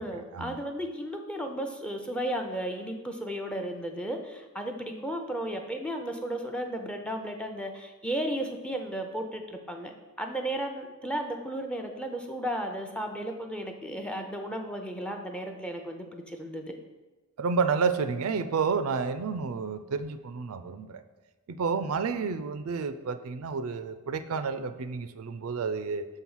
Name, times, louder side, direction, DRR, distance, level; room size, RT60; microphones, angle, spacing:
voice 1, 0.0-9.9 10.2-16.7, right 1 dB, 5° left, 4 dB, 0.5 m, -34 dB
voice 2, 17.4-21.0 21.5-26.1, right 5 dB, 80° right, 11 dB, 0.4 m, -30 dB
6.6 x 4.5 x 5.5 m, 1.2 s
head